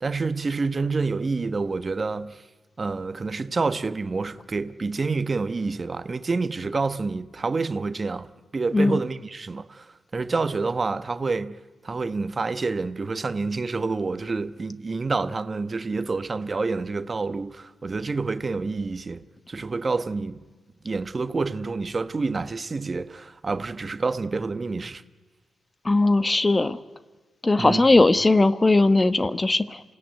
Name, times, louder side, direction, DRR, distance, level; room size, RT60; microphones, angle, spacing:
voice 1, 0.0-2.4 2.8-8.3 8.5-11.6 11.8-20.5 20.8-25.0 27.6-27.8, right 4 dB, 40° right, 1.1 m, -28 dB
voice 2, 25.8-26.8 27.4-29.8, left 2 dB, 25° left, 1.1 m, -19 dB
27.0 x 17.0 x 9.3 m
supercardioid pair, 50°, 0 cm